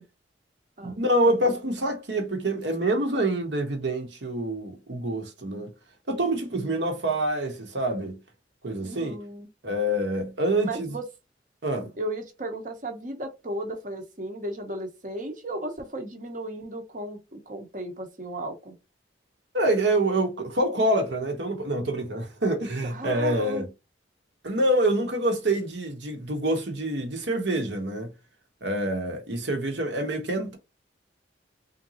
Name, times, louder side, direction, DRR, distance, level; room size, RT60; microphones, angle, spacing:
voice 1, 0.8-5.7 6.1-8.2 8.6-9.2 9.6-10.9 11.6-11.9 19.5-23.7 24.4-28.1 28.6-30.6, right 1 dB, 75° right, 1.1 m, -26 dB
voice 2, 8.8-9.5 10.6-11.0 12.0-18.8 22.8-23.7, right 1 dB, 45° right, 0.9 m, -35 dB
3.7 x 2.7 x 2.8 m
head